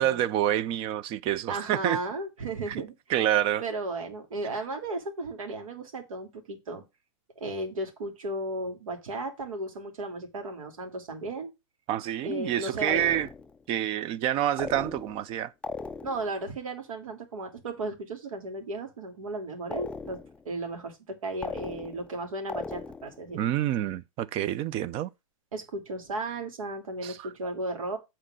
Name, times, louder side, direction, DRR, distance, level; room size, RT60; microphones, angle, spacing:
voice 1, 0.0-2.0 2.7-2.8 3.1-3.6 11.9-13.3 13.7-15.5 23.3-25.1 27.0-27.2, right 12 dB, 30° right, 0.6 m, -27 dB
voice 2, 1.5-2.9 3.6-6.8 7.4-11.5 12.2-13.0 16.0-20.2 20.4-23.4 25.5-28.0, right 2 dB, 75° right, 3.2 m, -35 dB
sound 1, 12.9-13.6 14.6-15.3 15.6-16.4 19.7-20.4 21.4-22.2 22.5-23.2, left 4 dB, 5° left, 0.4 m, -38 dB
7.4 x 4.4 x 6.4 m
hypercardioid pair, 120°, 17 cm